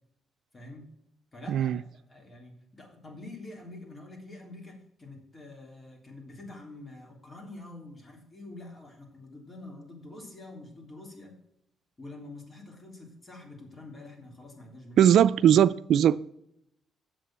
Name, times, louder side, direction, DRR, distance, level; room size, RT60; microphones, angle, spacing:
voice 1, 0.5-0.9 1.3-11.3 12.0-15.3, left 2 dB, 30° left, 3.4 m, -46 dB
voice 2, 15.0-16.2, right 10 dB, 70° right, 0.3 m, -20 dB
7.5 x 7.0 x 7.4 m
cardioid pair, 90°, 0 cm